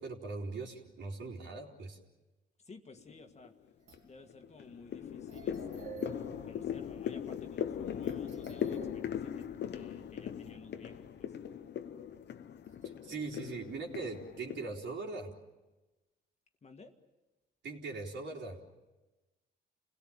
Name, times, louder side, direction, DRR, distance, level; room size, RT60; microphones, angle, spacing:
voice 1, 0.0-2.0 12.8-15.3 17.6-18.6, right 3 dB, 65° right, 0 dB, 4.0 m, -40 dB
voice 2, 2.6-3.5 4.0-6.1 6.4-11.3 16.6-16.9, left 3 dB, 35° left, 5 dB, 1.9 m, -54 dB
sound 1, 3.0-3.5 3.9-14.7, left 9 dB, 60° left, 1.0 m, -39 dB
sound 2, 3.8-4.2 4.9-5.0 5.3-7.2 7.5-7.6 8.0-10.6 11.0-11.1 12.4-13.3, right 6 dB, 85° right, 4.2 m, -52 dB
29.5 x 17.5 x 8.7 m, 1.1 s
cardioid pair, 90°, 20 cm